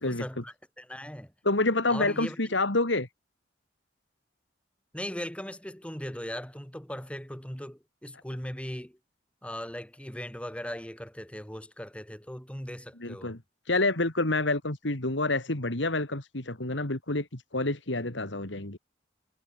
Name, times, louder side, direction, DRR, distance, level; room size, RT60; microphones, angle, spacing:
voice 1, 0.0-1.3 1.9-2.4 4.9-9.0 9.4-13.4, equal, 5° left, 5.4 m, -39 dB
voice 2, 1.4-3.1 13.0-13.4 13.6-18.8, left 2 dB, 75° left, 3.1 m, -28 dB
head